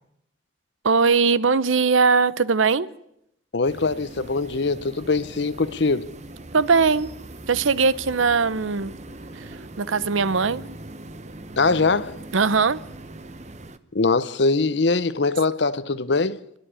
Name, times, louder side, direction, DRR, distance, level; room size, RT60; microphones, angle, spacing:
voice 1, 0.8-2.9 6.5-7.1 7.5-8.9 9.3-10.6 12.3-12.8, right 4 dB, 85° right, 0.8 m, -20 dB
voice 2, 3.5-6.1 11.6-12.2 13.9-16.4, left 3 dB, 60° left, 0.8 m, -22 dB
sound 1, 3.6-13.8, right 2 dB, 35° right, 1.0 m, -41 dB
28.5 x 11.0 x 10.0 m
head